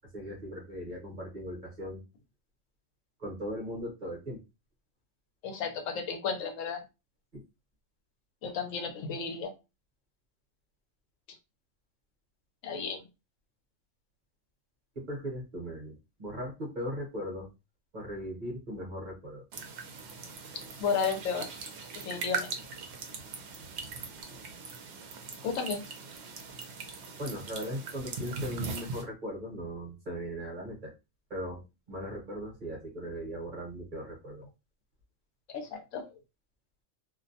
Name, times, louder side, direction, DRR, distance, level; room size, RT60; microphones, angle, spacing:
voice 1, 0.1-2.0 3.2-4.4 7.3-7.4 14.9-17.5 17.9-19.4 27.2-30.9 31.3-31.6 31.9-34.4, equal, 40° right, -1 dB, 0.9 m, -38 dB
voice 2, 5.4-6.8 8.4-9.5 12.6-13.0 20.8-21.5 22.0-22.5 25.4-25.8 35.5-36.1, left 6 dB, 75° left, 5 dB, 0.9 m, -33 dB
sound 1, 19.5-29.0, right 4 dB, 65° right, 0.8 m, -40 dB
2.5 x 2.1 x 2.6 m, 0.26 s
omnidirectional pair, 1.4 m